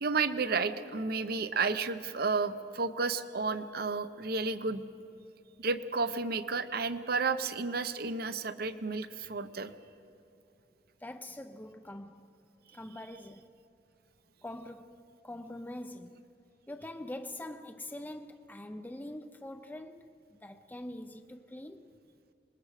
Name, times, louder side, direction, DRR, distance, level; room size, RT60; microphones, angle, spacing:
voice 1, 0.0-4.8 5.6-9.7, right 4 dB, 60° right, 0.8 m, -32 dB
voice 2, 11.0-12.3 12.7-13.5 14.4-16.3 16.7-21.9, left 1 dB, 10° left, 0.5 m, -44 dB
26.5 x 21.0 x 4.9 m
head